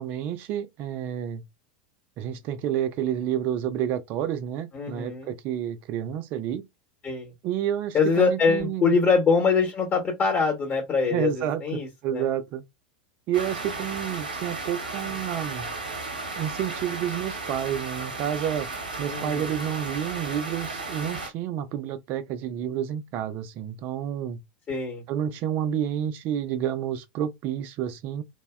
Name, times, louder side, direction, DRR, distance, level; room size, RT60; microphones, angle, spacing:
voice 1, 0.0-1.4 2.2-6.7 7.4-9.0 11.1-12.6 13.3-15.7 16.4-18.7 19.0-24.4 25.1-28.2, right 10 dB, 45° right, 0.4 m, -29 dB
voice 2, 4.7-5.3 7.0-7.3 7.9-12.3 19.1-19.4 24.7-25.0, left 5 dB, 30° left, 1.0 m, -24 dB
sound 1, 13.3-21.3, right 3 dB, 80° right, 0.8 m, -34 dB
2.6 x 2.1 x 2.2 m
figure-of-eight pair, 85°, 5 cm